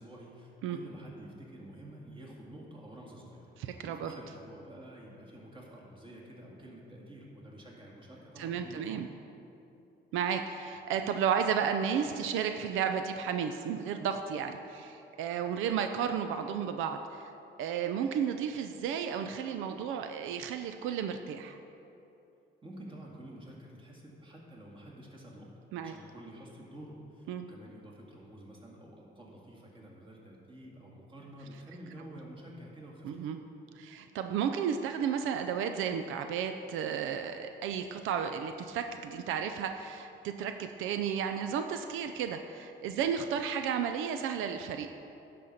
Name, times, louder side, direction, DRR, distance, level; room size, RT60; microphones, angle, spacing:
voice 1, 0.0-8.9 22.6-25.5 25.8-33.3, right 1 dB, 25° right, -3 dB, 2.1 m, -49 dB
voice 2, 3.6-4.2 8.4-9.1 10.1-17.3 17.6-21.6 25.7-25.9 27.3-27.5 33.0-33.4 33.7-44.9, right 7 dB, 90° right, 7 dB, 0.5 m, -33 dB
11.0 x 4.2 x 6.5 m, 2.8 s
cardioid pair, 90°, 20 cm